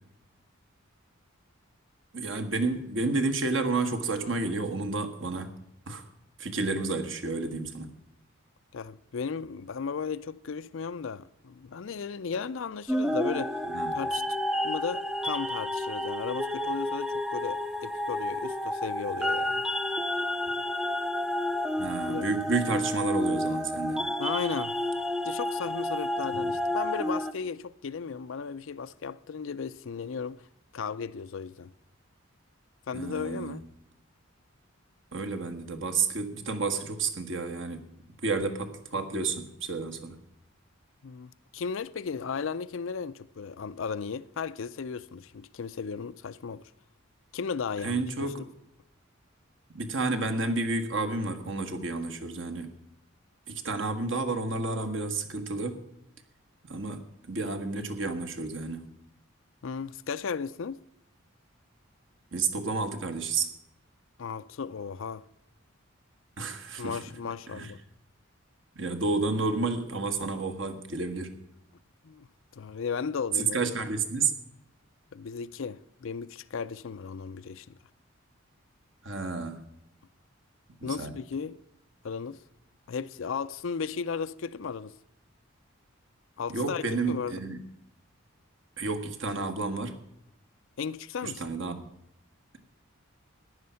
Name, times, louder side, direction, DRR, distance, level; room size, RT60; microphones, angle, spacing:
voice 1, 2.1-5.5 5.9-6.0 6.4-7.9 13.7-13.9 21.8-24.0 26.5-26.6 32.9-33.6 35.1-37.8 38.2-40.2 47.8-48.4 49.7-52.7 53.5-55.8 56.6-58.8 62.3-63.5 66.4-67.0 67.5-67.7 68.7-71.3 73.5-74.3 79.0-79.6 80.8-81.2 86.5-87.6 88.8-90.0 91.2-91.9, right 3 dB, 60° right, 1.5 m, -31 dB
voice 2, 8.7-13.5 13.9-14.2 14.6-19.6 22.1-22.3 24.2-24.8 25.2-30.4 30.7-31.7 32.9-33.6 41.0-46.6 47.3-48.5 59.6-60.8 64.2-65.2 66.8-67.8 72.0-72.3 72.5-73.6 75.1-77.8 80.8-81.6 82.0-82.4 82.9-84.9 86.4-87.3 90.8-91.4, left 5 dB, 65° left, 0.5 m, -35 dB
sound 1, 12.9-27.3, left 1 dB, ahead, 0.5 m, -30 dB
14.5 x 10.5 x 5.7 m
head